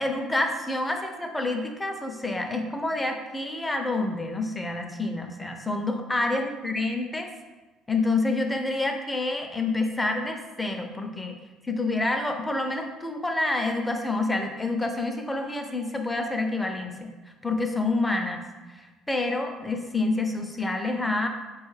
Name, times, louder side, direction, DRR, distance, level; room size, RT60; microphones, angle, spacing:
voice 1, 0.0-7.3 7.9-11.4 11.6-17.1 17.4-18.4 18.7-21.3, left 2 dB, 10° left, 4 dB, 0.5 m, -28 dB
3.9 x 2.3 x 3.2 m, 1.2 s
supercardioid pair, 85°, 0 cm